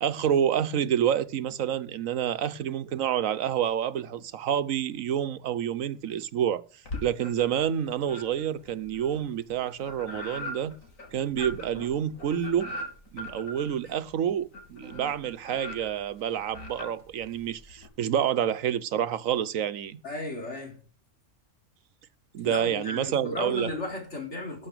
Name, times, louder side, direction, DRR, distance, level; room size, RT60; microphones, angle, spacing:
voice 1, 0.0-6.6 7.0-10.8 11.1-12.7 13.1-20.0 22.3-23.7, right 9 dB, 90° right, 1.2 m, -28 dB
sound 1, 6.8-7.7 8.0-17.9, left 1 dB, 90° left, 3.4 m, -41 dB
voice 2, 20.0-20.8 22.4-24.7, left 2 dB, 60° left, 4.4 m, -35 dB
12.0 x 7.3 x 6.7 m
omnidirectional pair, 1.3 m